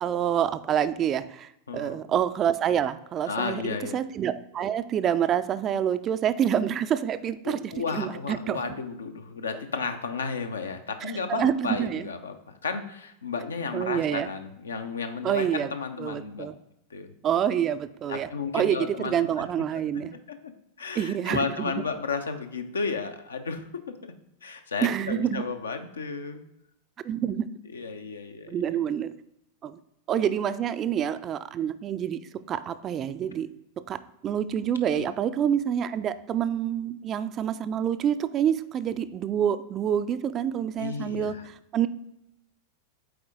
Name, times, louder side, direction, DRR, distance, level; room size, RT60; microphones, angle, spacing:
voice 1, 0.0-8.6 11.0-12.1 13.7-14.3 15.2-15.7 16.0-16.5 17.2-20.2 21.0-21.7 24.8-25.4 27.0-27.5 28.5-29.1 29.6-29.8 30.1-33.5 33.8-41.4 41.7-41.9, right 9 dB, 30° right, 13 dB, 0.3 m, -27 dB
voice 2, 1.7-2.0 3.3-4.0 7.4-16.5 16.9-17.1 18.1-19.5 19.7-19.8 20.3-20.5 20.8-23.7 24.0-24.1 24.4-26.4 27.7-28.8 35.0-35.1 40.8-41.4, left 4 dB, 70° left, 7 dB, 0.6 m, -33 dB
7.8 x 4.4 x 3.7 m, 0.85 s
figure-of-eight pair, 90°, 0 cm